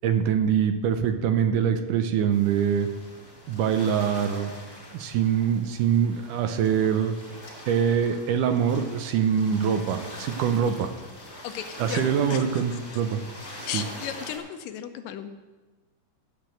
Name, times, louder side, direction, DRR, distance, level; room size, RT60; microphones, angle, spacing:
voice 1, 0.0-2.9 3.5-4.5 4.9-7.1 7.7-10.9 11.8-13.2 13.6-13.8, right 8 dB, 80° right, 7 dB, 2.2 m, -24 dB
sound 1, 2.3-14.4, left 1 dB, 25° left, 4.0 m, -43 dB
voice 2, 11.4-12.4 12.7-12.8 13.7-15.3, left 10 dB, 90° left, 8 dB, 2.4 m, -35 dB
15.0 x 5.2 x 7.8 m, 1.3 s
omnidirectional pair, 3.9 m